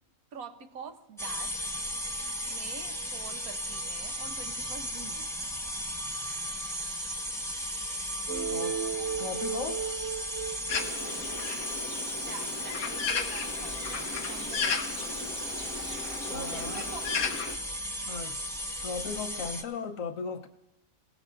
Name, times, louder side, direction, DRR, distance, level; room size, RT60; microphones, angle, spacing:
voice 1, 0.3-1.8 2.5-5.3 12.2-14.8 16.2-17.4, right 5 dB, 80° right, 1.4 m, -45 dB
sound 1, 1.2-19.6, equal, ahead, 1.0 m, -36 dB
sound 2, 8.3-12.0, right 7 dB, 60° right, 0.9 m, -35 dB
voice 2, 8.5-8.8 9.2-10.0 16.2-16.9 18.1-18.4 18.8-20.5, left 5 dB, 70° left, 1.3 m, -37 dB
Bird, 10.7-17.6, left 5 dB, 85° left, 1.5 m, -35 dB
29.5 x 17.5 x 2.6 m
omnidirectional pair, 1.5 m